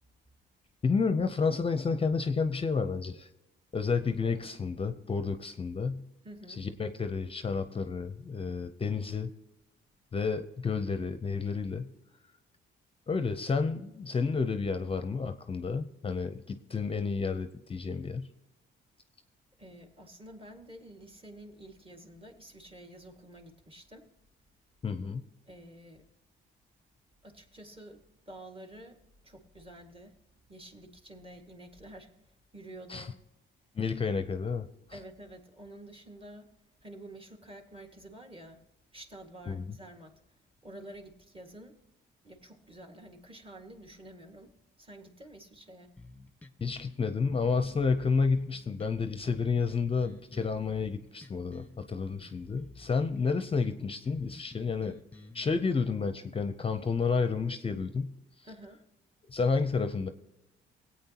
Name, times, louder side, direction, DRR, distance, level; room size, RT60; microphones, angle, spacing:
voice 1, 0.8-3.3 3.7-6.0 6.6-9.3 10.1-11.9 13.1-18.3 24.8-25.2 32.9-33.1 33.8-34.7 39.5-39.7 46.6-55.0 55.3-58.1 59.3-60.1, left 5 dB, 30° left, 9 dB, 0.6 m, -30 dB
voice 2, 6.2-6.6 19.6-24.1 25.5-26.0 27.2-30.2 30.5-32.1 32.5-33.2 34.9-36.5 36.8-38.6 38.9-40.1 40.6-41.8 42.2-44.5 44.8-45.9 58.4-58.8, right 1 dB, 25° right, 4 dB, 1.9 m, -49 dB
sound 1, 46.0-55.6, left 3 dB, 10° left, 1.1 m, -52 dB
18.5 x 8.7 x 2.9 m, 0.95 s
cardioid pair, 90°, 20 cm